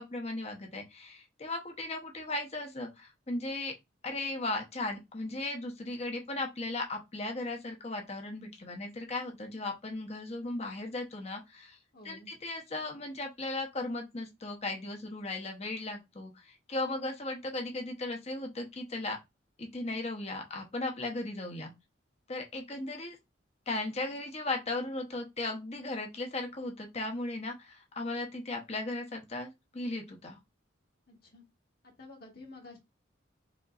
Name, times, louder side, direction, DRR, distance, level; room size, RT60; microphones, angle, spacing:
voice 1, 0.0-3.7 4.0-11.8 12.0-19.2 19.6-21.7 22.3-23.2 23.7-30.4, left 2 dB, 35° left, 0.9 m, -36 dB
voice 2, 11.9-12.3 31.1-31.4 31.8-32.8, left 2 dB, 55° left, 1.7 m, -50 dB
5.2 x 2.9 x 2.5 m
head